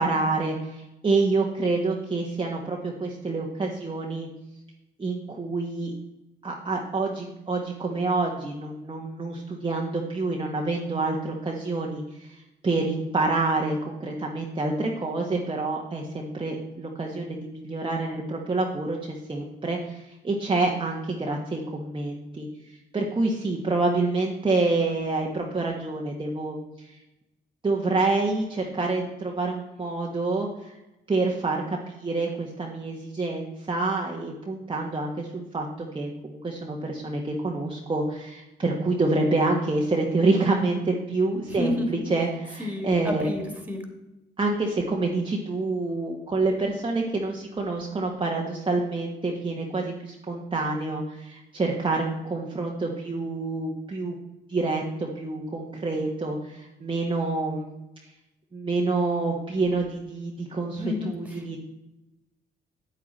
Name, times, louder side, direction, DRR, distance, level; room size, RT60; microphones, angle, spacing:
voice 1, 0.0-4.3 5.0-5.9 6.4-27.0 27.6-30.8 31.1-43.3 44.4-54.1 54.5-57.7 58.5-61.6, right 3 dB, 25° right, -1 dB, 1.4 m, -27 dB
voice 2, 41.4-42.0 42.6-43.8 60.8-61.5, left 1 dB, 10° right, 4 dB, 2.5 m, -31 dB
8.7 x 8.2 x 4.2 m, 0.96 s
supercardioid pair, 65°, 20 cm